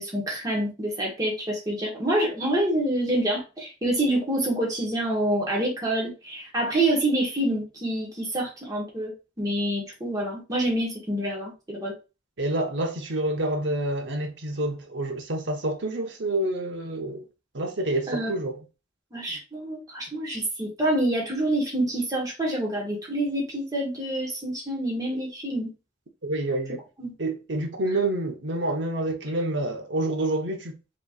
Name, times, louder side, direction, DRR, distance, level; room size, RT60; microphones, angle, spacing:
voice 1, 0.0-11.9 18.1-18.3 19.1-25.7 27.0-27.1, right 1 dB, 20° right, 1.5 m, -27 dB
voice 2, 12.4-17.3 17.5-18.6 26.2-26.8 27.2-30.8, right 1 dB, 70° right, 0.9 m, -28 dB
5.0 x 3.1 x 2.4 m
head